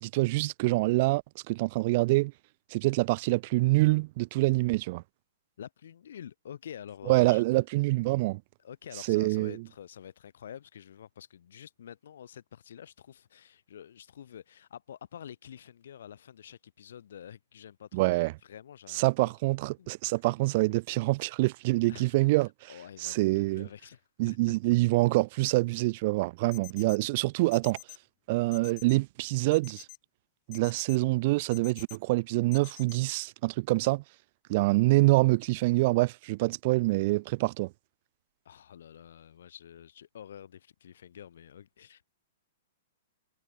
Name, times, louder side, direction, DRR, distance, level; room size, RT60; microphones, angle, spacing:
voice 1, 0.0-2.3 2.7-5.0 7.1-8.4 9.1-9.6 17.9-18.3 18.9-22.7 23.0-23.7 24.2-27.8 28.3-29.9 30.5-34.0 34.5-37.7, right 21 dB, 50° right, 0.4 m, -26 dB
voice 2, 5.6-7.4 8.6-19.3 19.8-20.2 21.9-22.4 22.7-24.6 38.4-42.1, left 9 dB, 70° left, 5.0 m, -48 dB
sound 1, 26.5-27.0 27.5-28.0 28.5-29.0 29.5-30.0 30.5-31.0 31.5-32.0 32.5-33.0, left 24 dB, 40° left, 1.4 m, -47 dB
hypercardioid pair, 120°, 0 cm